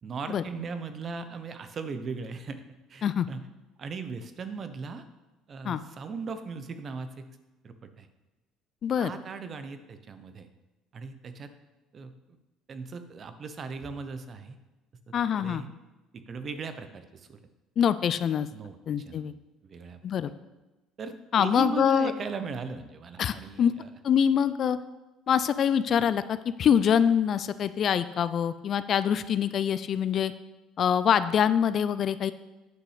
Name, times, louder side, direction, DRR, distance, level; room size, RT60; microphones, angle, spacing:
voice 1, 0.0-2.6 2.9-3.5 3.8-5.0 5.5-7.3 7.6-8.1 9.0-10.5 10.9-11.5 11.9-12.4 12.7-14.6 15.4-15.7 16.1-17.4 18.5-19.2 19.6-20.0 21.0-23.9, right 4 dB, 45° right, 10 dB, 0.9 m, -38 dB
voice 2, 8.8-9.1 15.1-15.6 17.8-18.5 18.9-19.3 20.0-20.3 21.3-22.1 23.2-23.7 24.0-24.8 25.3-30.3 30.8-32.3, left 8 dB, 50° left, 14 dB, 0.4 m, -25 dB
9.3 x 6.0 x 5.0 m, 1.1 s
supercardioid pair, 80°, 0 cm